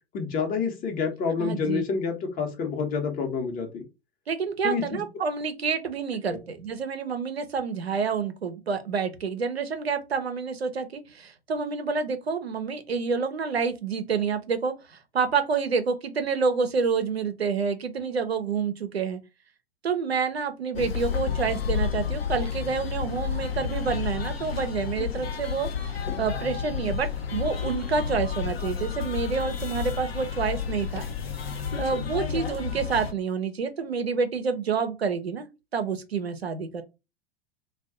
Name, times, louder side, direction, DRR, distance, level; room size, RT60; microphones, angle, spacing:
voice 1, 0.1-3.8 4.6-5.0 6.3-6.4, left 5 dB, 30° left, 0.9 m, -28 dB
voice 2, 1.4-1.8 4.3-19.2 19.8-31.0 31.8-35.5 35.7-36.8, right 5 dB, 90° right, 0.6 m, -28 dB
sound 1, 20.7-33.1, left 7 dB, 75° left, 0.7 m, -31 dB
2.5 x 2.3 x 3.5 m
figure-of-eight pair, 95°, 31 cm